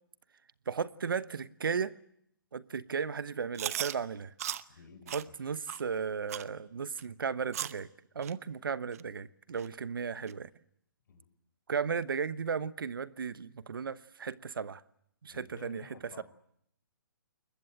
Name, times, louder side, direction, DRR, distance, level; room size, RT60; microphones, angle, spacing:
voice 1, 0.7-1.9 2.5-4.3 5.1-7.9 8.1-10.5 11.7-14.8 15.2-15.9 16.2-16.3, right 6 dB, 75° right, 1.0 m, -35 dB
Chewing mastication, 3.5-3.9 4.4-4.6 5.1-5.2 5.7-5.8 6.3-6.5 7.0-7.1 7.5-7.8 8.2-8.3 8.9-9.0 9.6-9.7 10.3-10.4, right 11 dB, 45° right, 0.9 m, -36 dB
voice 2, 4.7-5.3 11.1-11.3 15.3-16.2, left 4 dB, 60° left, 5.4 m, -52 dB
21.5 x 20.5 x 8.8 m
hypercardioid pair, 150°, 12 cm